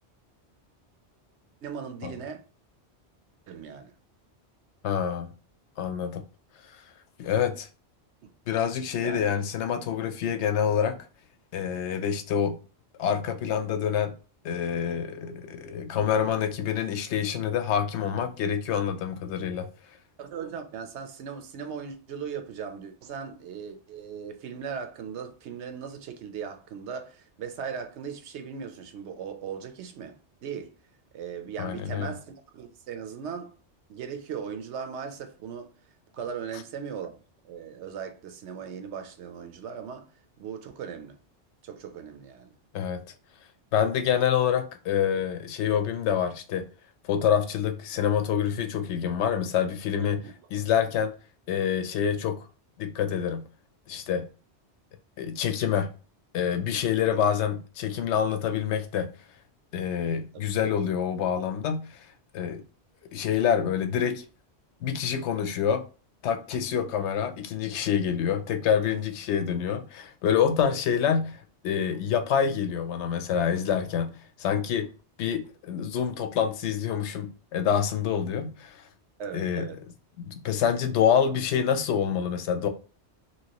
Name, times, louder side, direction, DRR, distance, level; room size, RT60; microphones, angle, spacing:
voice 1, 1.6-2.4 3.5-3.9 9.0-9.3 20.2-30.7 31.1-33.5 33.9-35.7 36.1-40.1 40.4-41.2 41.6-42.5 50.2-50.3 57.1-57.2 60.3-60.4 70.6-70.8 79.2-79.8, right 7 dB, 80° right, 0.9 m, -38 dB
voice 2, 4.8-5.3 5.8-6.2 7.2-7.7 8.5-11.0 11.5-12.6 13.0-14.1 14.4-19.7 31.6-32.1 42.7-43.0 43.7-46.6 47.1-50.2 50.5-51.1 51.5-52.4 52.8-53.4 53.9-54.3 55.2-55.9 56.3-59.1 59.7-62.0 62.3-62.6 63.1-64.2 64.8-65.8 66.2-74.1 74.4-74.9 75.2-78.8 79.3-79.7 80.2-82.7, left 8 dB, 80° left, 0.9 m, -27 dB
2.9 x 2.9 x 2.8 m
omnidirectional pair, 1.2 m